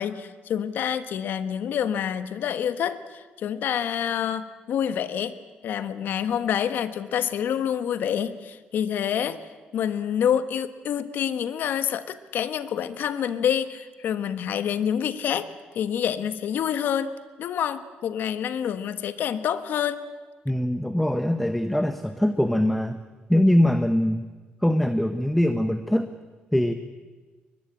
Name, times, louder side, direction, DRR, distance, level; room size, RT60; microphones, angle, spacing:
voice 1, 0.0-5.4 5.6-9.4 9.7-15.5 15.7-20.0, left 9 dB, 70° left, 12 dB, 1.4 m, -27 dB
voice 2, 20.4-23.0 23.3-24.3 24.6-26.1 26.5-26.7, left 1 dB, 5° left, 9 dB, 1.1 m, -22 dB
22.0 x 21.5 x 8.8 m, 1.4 s
cardioid pair, 105°, 3 cm